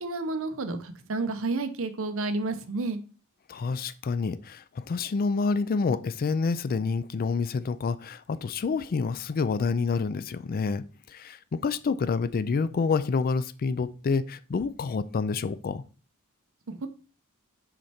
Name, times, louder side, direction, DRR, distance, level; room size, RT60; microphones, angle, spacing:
voice 1, 0.0-3.0 16.7-16.9, right 3 dB, 65° right, 0.8 m, -30 dB
voice 2, 3.5-15.8, left 4 dB, 40° left, 0.4 m, -28 dB
6.4 x 4.5 x 4.2 m
head